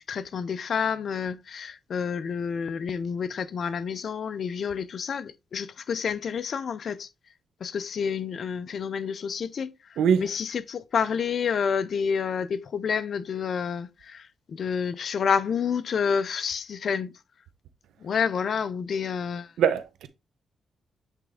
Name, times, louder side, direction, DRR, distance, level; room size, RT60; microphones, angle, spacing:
voice 1, 0.0-7.1 7.6-17.1 18.0-19.5, left 6 dB, 60° left, 0.5 m, -29 dB
voice 2, 10.0-10.3 19.6-20.1, right 8 dB, 90° right, 0.8 m, -22 dB
8.2 x 3.5 x 3.6 m
cardioid pair, 80°, 0 cm